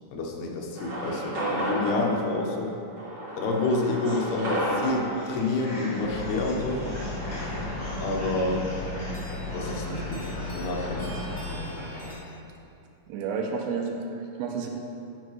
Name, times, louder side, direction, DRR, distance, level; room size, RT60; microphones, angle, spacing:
voice 1, 0.1-2.7 3.4-6.9 8.0-8.8 9.5-11.3, left 2 dB, 90° left, 0 dB, 2.8 m, -28 dB
sound 1, 0.8-7.7, right 1 dB, 45° right, 1.6 m, -33 dB
sound 2, 4.0-12.1, equal, 45° left, 1.0 m, -38 dB
sound 3, 6.0-11.6, left 3 dB, 70° left, 3.6 m, -36 dB
voice 2, 13.1-14.7, right 5 dB, 80° right, 1 dB, 2.4 m, -31 dB
11.0 x 5.4 x 3.2 m, 2.5 s
omnidirectional pair, 4.3 m